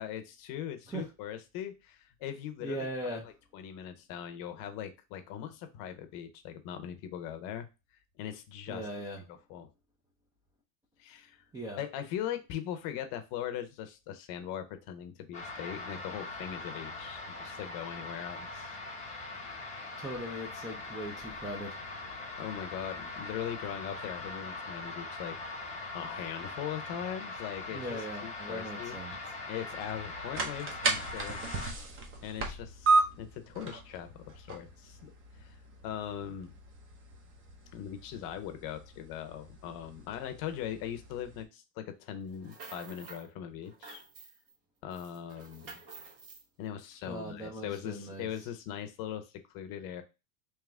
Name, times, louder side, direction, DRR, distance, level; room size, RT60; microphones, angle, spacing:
voice 1, 0.0-2.8 3.0-7.7 8.2-8.9 9.2-9.7 11.0-11.4 11.7-18.7 22.4-25.3 25.9-31.4 32.2-35.1 35.4-35.5 35.8-36.5 37.7-44.0 44.8-45.7 46.6-49.3 49.5-50.0, left 10 dB, 50° left, 8 dB, 0.8 m, -40 dB
voice 2, 2.6-3.3 8.7-9.2 11.5-11.8 20.0-21.8 27.7-29.2 47.1-48.3, right 1 dB, 10° right, -2 dB, 0.4 m, -39 dB
sound 1, 15.3-31.7, left 3 dB, 15° left, 0.9 m, -41 dB
sound 2, 29.7-41.4, right 3 dB, 30° right, 0.8 m, -35 dB
sound 3, 42.3-43.3 43.6-44.5 44.9-46.4, right 4 dB, 50° right, 1.4 m, -50 dB
3.6 x 3.0 x 3.3 m, 0.27 s
supercardioid pair, 145°, 44 cm